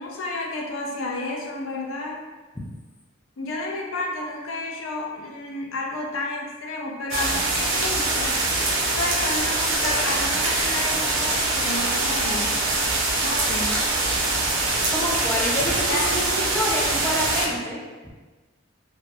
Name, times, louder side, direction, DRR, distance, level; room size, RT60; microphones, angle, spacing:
voice 1, 0.0-2.2 3.4-8.4 8.9-12.7 13.2-13.9 15.9-16.1, left 2 dB, 75° left, -1 dB, 0.4 m, -31 dB
sound 1, 7.1-17.5, right 2 dB, 90° right, 0.5 m, -23 dB
voice 2, 14.9-18.1, equal, 10° left, -4 dB, 0.3 m, -28 dB
2.1 x 2.1 x 2.8 m, 1.3 s
head